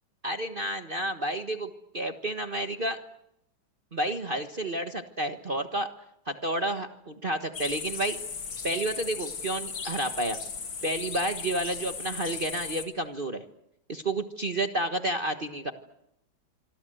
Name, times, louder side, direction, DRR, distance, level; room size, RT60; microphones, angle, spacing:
voice 1, 0.2-3.0 3.9-5.9 6.3-8.2 8.6-10.4 10.8-13.4 13.9-15.7, right 1 dB, 30° right, 6 dB, 1.3 m, -30 dB
sound 1, 7.5-12.9, left 5 dB, 80° left, 3.1 m, -37 dB
26.0 x 24.5 x 7.9 m, 0.82 s
omnidirectional pair, 2.1 m